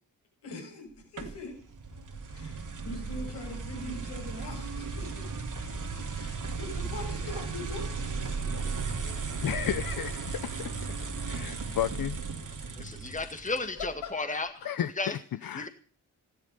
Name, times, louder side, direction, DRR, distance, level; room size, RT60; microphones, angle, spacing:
voice 1, 0.4-1.6 2.3-5.3 6.1-8.7 13.4-14.7, left 2 dB, 75° left, 7.2 m, -43 dB
sound 1, 1.2-13.9, right 4 dB, 45° right, 3.5 m, -36 dB
voice 2, 9.4-10.7 11.3-12.2 14.6-15.7, left 10 dB, 55° left, 0.9 m, -33 dB
voice 3, 12.8-14.5 15.0-15.2 15.6-15.7, left 3 dB, 20° left, 1.9 m, -33 dB
14.5 x 12.5 x 6.7 m
supercardioid pair, 50°, 41 cm